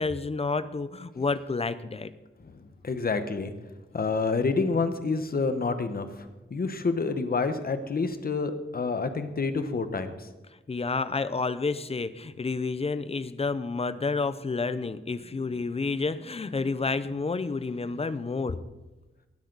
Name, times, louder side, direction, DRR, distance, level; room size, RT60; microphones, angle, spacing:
voice 1, 0.0-2.1 10.7-18.6, left 4 dB, 30° left, 14 dB, 0.6 m, -30 dB
voice 2, 2.8-3.5 3.9-6.1 6.5-10.1, left 4 dB, 45° left, 9 dB, 1.1 m, -28 dB
18.5 x 12.5 x 4.0 m, 1.1 s
wide cardioid pair, 155°, 21 cm